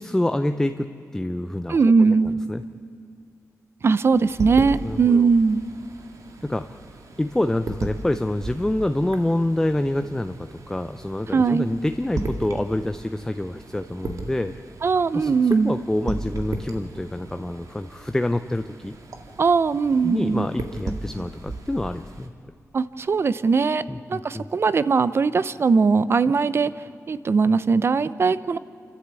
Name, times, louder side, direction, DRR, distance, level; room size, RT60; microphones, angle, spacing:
voice 1, 0.0-1.8 2.2-2.6 4.8-5.3 6.4-6.8 7.2-14.5 15.1-18.9 20.0-22.3 23.9-24.5, left 1 dB, 10° left, 9 dB, 0.5 m, -27 dB
voice 2, 1.7-2.4 3.8-5.6 11.3-11.7 14.8-15.8 19.4-20.5 22.7-23.8 24.1-26.7 27.1-28.6, right 4 dB, 45° right, 16 dB, 0.6 m, -20 dB
sound 1, 4.1-22.3, right 2 dB, 80° right, 1.8 m, -36 dB
29.0 x 13.0 x 8.2 m, 2.5 s
wide cardioid pair, 155°, 6 cm